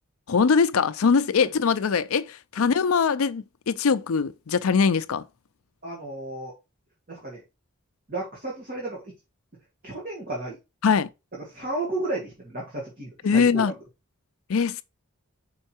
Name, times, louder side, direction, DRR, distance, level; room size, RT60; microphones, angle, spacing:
voice 1, 0.3-5.2 10.8-11.1 13.2-13.7 14.5-14.8, left 5 dB, 75° left, 0.5 m, -22 dB
voice 2, 5.8-6.5 7.1-7.4 8.1-9.0 9.8-10.6 11.5-13.6, right 2 dB, 40° right, 2.1 m, -33 dB
5.5 x 4.5 x 4.4 m
head